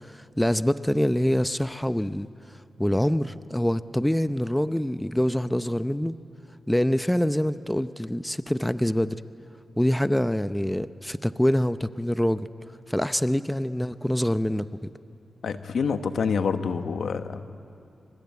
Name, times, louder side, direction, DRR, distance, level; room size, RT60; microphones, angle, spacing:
voice 1, 0.0-2.3 2.8-6.2 6.7-9.2 9.8-12.5 12.9-14.9, equal, 5° left, 13 dB, 0.6 m, -25 dB
voice 2, 15.4-17.4, left 5 dB, 80° left, 9 dB, 1.1 m, -27 dB
24.5 x 24.5 x 9.6 m, 2.5 s
cardioid pair, 75°, 0 cm